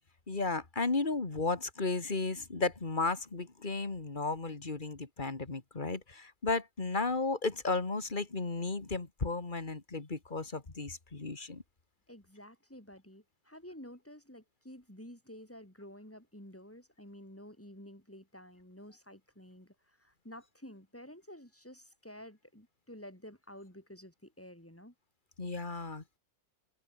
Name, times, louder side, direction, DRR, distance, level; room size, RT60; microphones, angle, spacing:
voice 1, 0.3-11.6 25.4-26.2, left 3 dB, 25° left, 2.2 m, -34 dB
voice 2, 12.1-24.9, equal, 5° left, 5.2 m, -51 dB
omnidirectional pair, 2.0 m